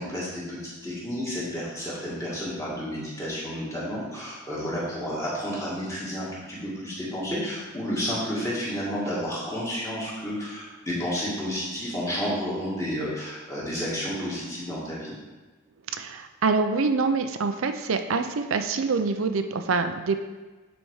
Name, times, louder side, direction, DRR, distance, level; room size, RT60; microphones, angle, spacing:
voice 1, 0.0-15.1, equal, 15° left, -7 dB, 2.0 m, -31 dB
voice 2, 15.9-20.2, right 4 dB, 75° right, 7 dB, 0.5 m, -25 dB
8.8 x 4.1 x 4.8 m, 1.3 s
head